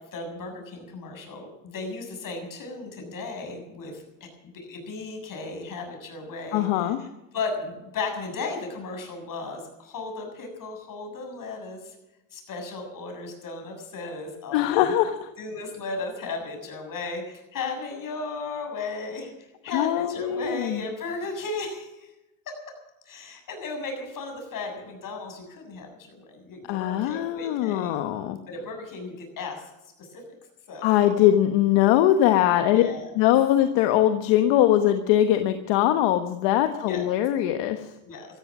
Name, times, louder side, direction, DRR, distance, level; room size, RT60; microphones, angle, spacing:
voice 1, 0.0-4.0 4.5-7.1 7.3-12.0 12.3-15.0 15.4-22.1 23.1-27.9 28.5-29.6 30.0-30.2 30.7-31.1 32.7-33.1 36.8-37.0 38.1-38.4, left 3 dB, 45° left, 4 dB, 7.3 m, -35 dB
voice 2, 6.5-7.0 14.5-15.3 19.7-20.8 26.7-28.4 30.8-32.8 33.1-37.9, left 12 dB, 70° left, 7 dB, 1.4 m, -21 dB
16.0 x 14.5 x 6.2 m, 0.96 s
supercardioid pair, 105°, 44 cm